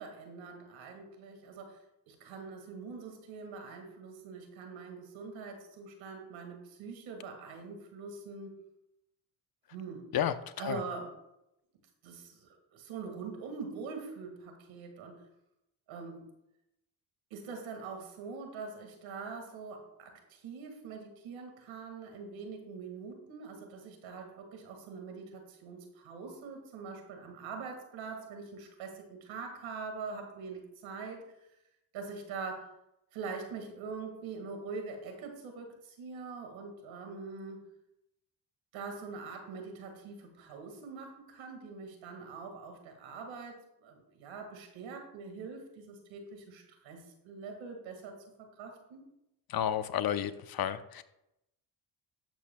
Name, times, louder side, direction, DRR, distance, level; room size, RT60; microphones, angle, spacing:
voice 1, 0.0-8.6 9.7-10.1 10.6-11.1 12.0-15.2 15.9-16.4 17.3-31.3 31.9-32.7 33.1-37.7 38.7-49.0, right 4 dB, 85° right, 3 dB, 2.0 m, -44 dB
voice 2, 10.1-10.8 49.5-51.0, left 10 dB, 55° left, 12 dB, 0.8 m, -32 dB
12.5 x 8.4 x 2.3 m, 0.85 s
supercardioid pair, 60°, 45 cm